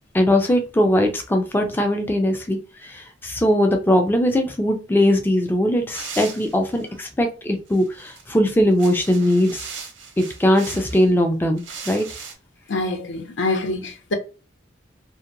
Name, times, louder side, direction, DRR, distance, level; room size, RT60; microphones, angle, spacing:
voice 1, 0.1-9.7 10.2-12.1, left 1 dB, 10° left, 0.3 m, -20 dB
sound 1, 5.9-6.9 7.7-8.2 8.7-11.1 11.6-12.3, right 6 dB, 90° right, 0.7 m, -38 dB
voice 2, 12.7-14.1, left 2 dB, 85° left, 0.6 m, -25 dB
2.7 x 2.1 x 2.5 m
head